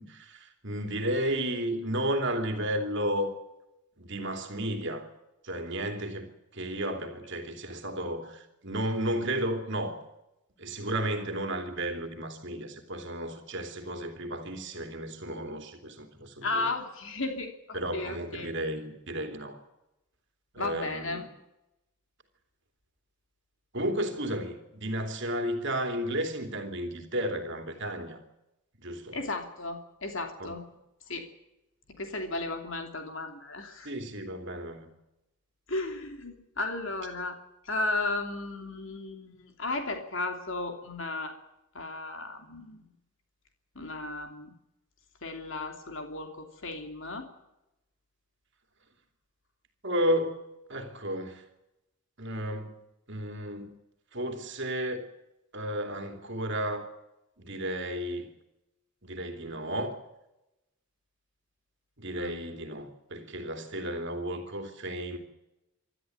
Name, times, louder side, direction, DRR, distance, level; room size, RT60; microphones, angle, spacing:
voice 1, 0.0-3.3 4.0-5.1 5.4-10.0 10.6-16.7 17.7-19.6 20.5-21.3 23.7-28.2 28.8-29.2 30.4-30.5 33.8-34.9 49.8-50.4 50.7-51.4 52.2-52.8 53.1-53.7 54.1-55.0 55.5-56.8 57.4-58.3 59.0-59.9 62.0-65.2, right 1 dB, 55° right, 6 dB, 3.0 m, -33 dB
voice 2, 16.4-17.5 17.9-18.5 20.6-21.2 29.1-30.6 31.1-31.3 31.9-33.9 35.7-37.4 37.6-41.3 41.7-42.8 43.7-44.5 45.2-47.3 62.2-62.3, left 2 dB, 60° left, 4 dB, 3.0 m, -34 dB
27.0 x 13.0 x 9.4 m, 0.92 s
head